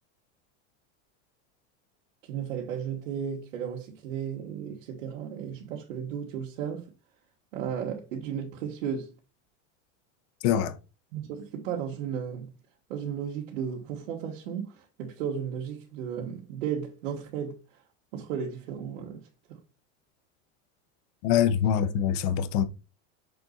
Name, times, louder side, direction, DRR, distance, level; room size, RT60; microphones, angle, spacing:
voice 1, 2.2-6.9 7.5-9.1 11.1-12.5 12.9-17.6 18.1-19.6, right 8 dB, 80° right, 1.8 m, -34 dB
voice 2, 10.4-10.7 21.2-22.6, left 9 dB, 50° left, 1.0 m, -24 dB
6.9 x 4.2 x 3.9 m
supercardioid pair, 150°, 37 cm